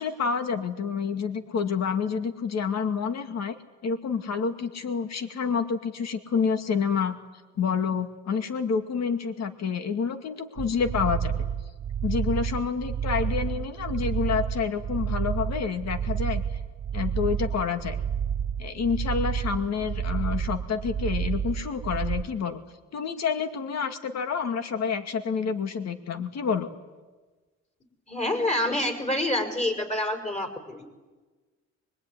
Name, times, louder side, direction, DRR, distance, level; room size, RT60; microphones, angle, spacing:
voice 1, 0.0-3.6 3.8-7.2 7.6-11.3 12.0-16.4 16.9-18.0 18.6-22.6 22.9-26.7, left 6 dB, 60° left, 7 dB, 2.3 m, -28 dB
sound 1, 10.6-22.2, right 8 dB, 50° right, 0.9 m, -30 dB
voice 2, 28.1-30.9, left 1 dB, 25° left, 5 dB, 6.0 m, -27 dB
24.5 x 22.5 x 9.7 m, 1.3 s
cardioid pair, 90°, 30 cm